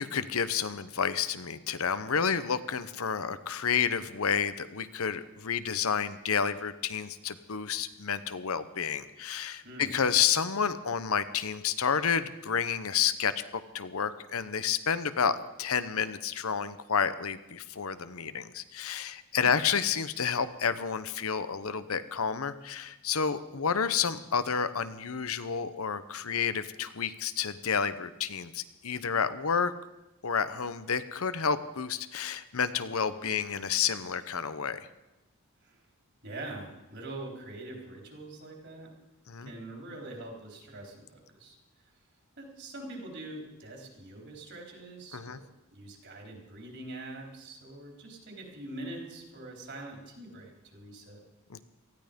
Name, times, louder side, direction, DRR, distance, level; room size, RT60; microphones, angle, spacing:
voice 1, 0.0-29.7 30.2-34.8 39.3-39.5 45.1-45.4 51.5-51.6, left 7 dB, 70° left, 13 dB, 0.8 m, -30 dB
voice 2, 9.6-9.9 19.3-19.5 35.6-35.8 36.2-38.9 39.4-41.6 42.4-51.2, right 2 dB, 50° right, 1 dB, 3.8 m, -44 dB
18.5 x 14.5 x 5.2 m, 1.0 s
head